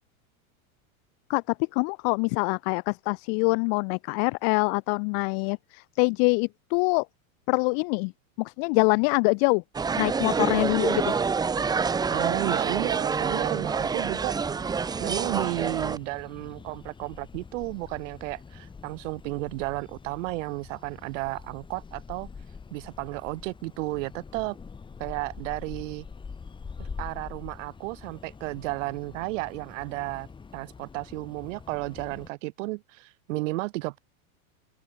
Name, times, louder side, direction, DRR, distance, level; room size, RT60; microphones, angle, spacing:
voice 1, 1.3-7.0 7.5-8.1 8.4-9.6 10.0-11.1, left 40 dB or more, 45° left, 1.0 m, -25 dB
sound 1, 9.7-16.0, right 5 dB, 10° right, 0.8 m, -27 dB
voice 2, 12.1-14.4 15.0-22.3 22.7-24.6 25.0-26.0 26.8-30.3 30.5-34.0, right 22 dB, 60° right, 2.4 m, -33 dB
sound 2, 14.2-32.3, left 5 dB, 10° left, 1.7 m, -45 dB
open air
supercardioid pair, 150°, 43 cm